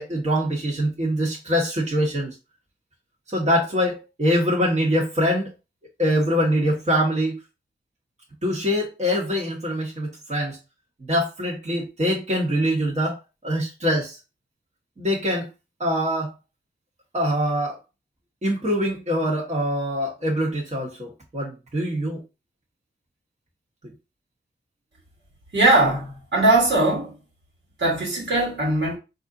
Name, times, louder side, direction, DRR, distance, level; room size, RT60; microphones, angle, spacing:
voice 1, 0.0-2.3 3.3-5.5 6.0-7.4 8.4-10.6 11.1-14.2 15.0-15.5 15.8-16.3 17.1-17.8 18.4-22.2, equal, 35° right, 1.4 m, -24 dB
voice 2, 25.5-27.1 27.8-29.0, right 2 dB, 65° right, 1.8 m, -20 dB
4.1 x 2.6 x 2.8 m
cardioid pair, 45°, 20 cm